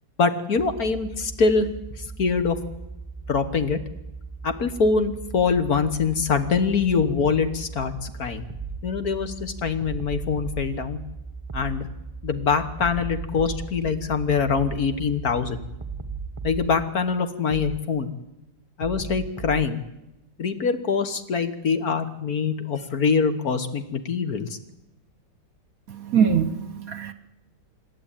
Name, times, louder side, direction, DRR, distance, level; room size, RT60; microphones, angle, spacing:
voice 1, 0.2-1.7 2.2-2.6 3.3-3.8 4.4-8.4 8.8-11.0 11.5-11.9 12.2-15.6 16.4-18.1 18.8-19.8 20.4-24.6, left 5 dB, 55° left, 10 dB, 1.8 m, -24 dB
sound 1, 0.5-16.8, right 4 dB, 15° left, 3.2 m, -39 dB
sound 2, 8.5-8.8 9.8-10.7 11.5-11.8 12.8-13.7 14.5-14.8 15.8-16.7 17.5-17.8 18.8-19.7, right 6 dB, 25° right, 0.8 m, -35 dB
voice 2, 25.9-27.1, right 7 dB, 55° right, 12 dB, 1.3 m, -23 dB
27.0 x 11.5 x 9.1 m, 0.91 s
omnidirectional pair, 2.0 m